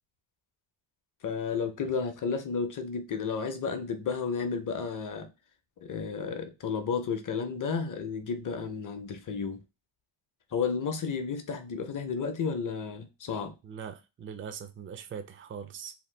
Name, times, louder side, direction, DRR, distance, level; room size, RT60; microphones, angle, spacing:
voice 1, 1.2-5.3 5.8-9.6 10.5-13.5, left 5 dB, 40° left, 0.6 m, -32 dB
voice 2, 13.6-15.9, right 7 dB, 30° right, 0.4 m, -41 dB
2.8 x 2.2 x 3.2 m
cardioid pair, 120°, 48 cm